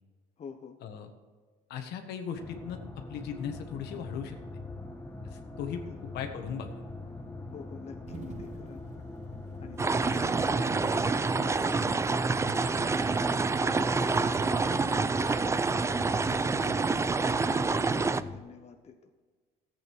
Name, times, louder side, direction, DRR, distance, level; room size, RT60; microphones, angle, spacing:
voice 1, 0.4-0.8 5.9-6.0 7.5-8.8 9.6-15.0 15.7-17.0 17.3-19.1, left 5 dB, 40° left, 5 dB, 1.0 m, -48 dB
voice 2, 1.7-2.8 3.1-4.4 5.3-6.7, left 8 dB, 80° left, 5 dB, 1.5 m, -38 dB
sound 1, 2.4-18.4, left 1 dB, 15° left, 1.4 m, -41 dB
sound 2, 8.1-10.1 10.3-10.5 11.1-11.7 12.5-13.0, right 6 dB, 45° right, 0.8 m, -49 dB
sound 3, 9.8-18.2, right 4 dB, 15° right, 0.4 m, -27 dB
13.5 x 8.6 x 4.6 m, 1.4 s
cardioid pair, 110°, 17 cm